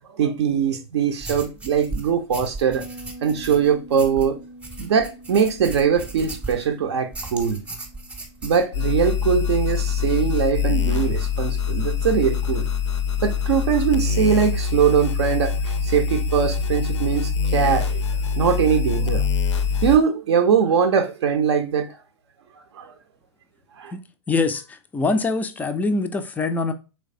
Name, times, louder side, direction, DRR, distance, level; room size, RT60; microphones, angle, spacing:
voice 1, 0.1-2.8 3.2-4.4 4.8-7.6 8.4-12.7 13.2-18.0 18.4-19.3 19.8-21.9 22.7-22.9 23.8-23.9, right 7 dB, 60° right, 0.5 m, -21 dB
sound 1, 1.2-6.7 7.1-8.7, right 2 dB, 10° right, 0.7 m, -36 dB
Bass guitar, 2.7-12.1, right 1 dB, 90° right, 0.8 m, -46 dB
sound 2, 8.7-20.0, left 6 dB, 70° left, 0.5 m, -24 dB
voice 2, 23.9-26.7, left 3 dB, 10° left, 0.3 m, -24 dB
3.3 x 3.1 x 2.5 m
figure-of-eight pair, 100°, 16 cm